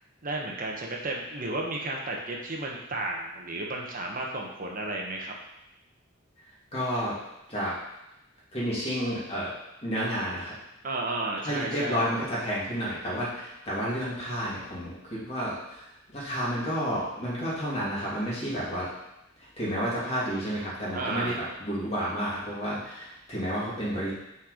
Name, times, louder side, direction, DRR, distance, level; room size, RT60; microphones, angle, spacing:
voice 1, 0.2-5.3 10.8-12.0 20.9-21.4, right 2 dB, 45° right, 0 dB, 1.1 m, -33 dB
voice 2, 6.7-7.2 7.5-7.7 8.5-9.5 9.8-10.5 11.4-15.9 16.1-18.9 19.6-24.1, equal, 30° left, -8 dB, 2.9 m, -31 dB
6.1 x 4.6 x 5.0 m, 0.86 s
head